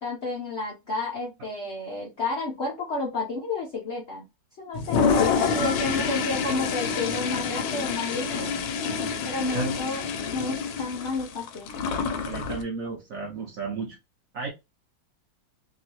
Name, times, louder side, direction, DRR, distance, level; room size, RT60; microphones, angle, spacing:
voice 1, 0.0-4.3 4.6-5.1 5.5-8.5 9.2-10.0 10.3-11.8, left 3 dB, 60° left, -2 dB, 0.7 m, -31 dB
Toilet flush, 4.7-12.6, left 5 dB, 75° left, 1.3 m, -27 dB
voice 2, 5.5-5.8 9.5-9.7 12.2-14.0 14.3-14.5, right 4 dB, 65° right, 1 dB, 0.9 m, -33 dB
3.0 x 2.8 x 2.8 m, 0.23 s
omnidirectional pair, 2.1 m